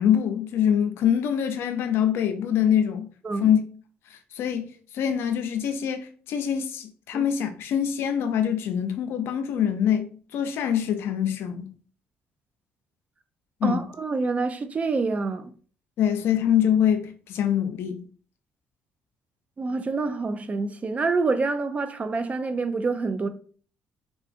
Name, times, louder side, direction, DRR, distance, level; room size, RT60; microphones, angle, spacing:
voice 1, 0.0-3.1 3.4-3.6 4.3-4.7 4.9-11.7 13.6-13.8 16.0-18.0, left 9 dB, 70° left, 0.4 m, -24 dB
voice 2, 13.6-15.5 19.6-23.3, right 3 dB, 35° right, 0.4 m, -27 dB
3.7 x 2.4 x 2.5 m
supercardioid pair, 70°, 4 cm